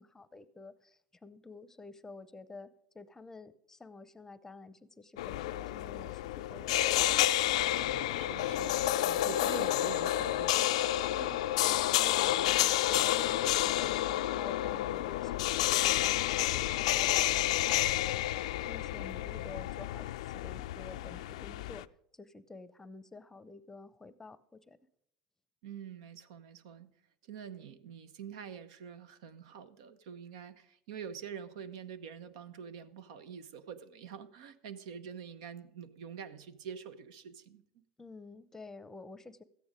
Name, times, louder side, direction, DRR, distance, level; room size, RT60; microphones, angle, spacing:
voice 1, 0.0-7.4 9.1-9.4 11.1-18.3 18.7-21.9 22.1-24.8 38.0-39.4, left 3 dB, 15° left, 16 dB, 0.7 m, -50 dB
sound 1, 5.2-21.9, left 14 dB, 85° left, 0.4 m, -30 dB
voice 2, 8.1-10.6 25.6-26.9 27.2-37.6, right 7 dB, 80° right, 13 dB, 0.9 m, -46 dB
13.5 x 9.3 x 5.1 m, 0.72 s
supercardioid pair, 100°, 3 cm